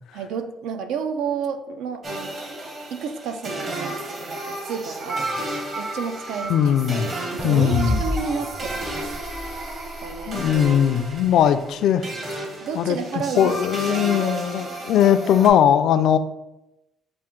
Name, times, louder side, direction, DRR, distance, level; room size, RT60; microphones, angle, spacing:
voice 1, 0.1-2.4 2.9-6.7 7.1-9.1 10.0-10.5 12.6-13.5 14.2-14.4, right 6 dB, 90° right, 8 dB, 0.4 m, -31 dB
sound 1, 2.0-15.5, right 1 dB, 40° right, 1.0 m, -32 dB
voice 2, 6.5-7.1 7.4-8.0 10.3-12.4 12.7-16.2, left 9 dB, 70° left, 11 dB, 0.3 m, -19 dB
sound 2, 7.4-10.6, equal, 10° right, 0.4 m, -30 dB
5.8 x 2.5 x 3.6 m, 0.91 s
cardioid pair, 130°, 0 cm